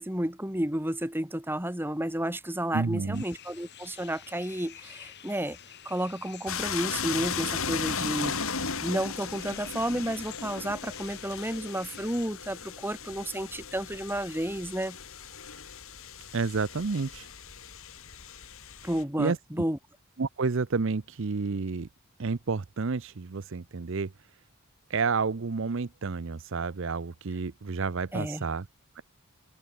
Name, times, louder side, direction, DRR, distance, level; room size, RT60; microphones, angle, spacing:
voice 1, 0.0-5.6 5.9-8.5 8.8-15.0 18.8-19.8 28.1-28.4, right 1 dB, 10° right, 1.8 m, -31 dB
voice 2, 2.7-3.2 16.3-17.3 19.2-19.4 20.2-21.9 22.2-24.1 24.9-28.7 29.0-29.1, right 4 dB, 55° right, 0.6 m, -30 dB
sound 1, 3.1-12.3, left 10 dB, 50° left, 3.1 m, -49 dB
sound 2, 6.5-19.0, left 6 dB, 65° left, 4.1 m, -36 dB
head